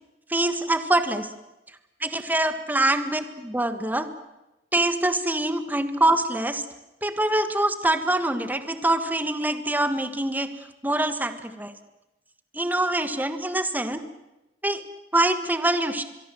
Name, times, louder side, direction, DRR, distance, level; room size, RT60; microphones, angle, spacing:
voice 1, 0.3-1.3 2.0-4.1 4.7-6.6 7.0-10.5 10.8-11.7 12.5-14.0 14.6-14.8 15.1-16.0, right 1 dB, 10° right, 9 dB, 1.5 m, -24 dB
23.5 x 23.0 x 7.6 m, 0.97 s
head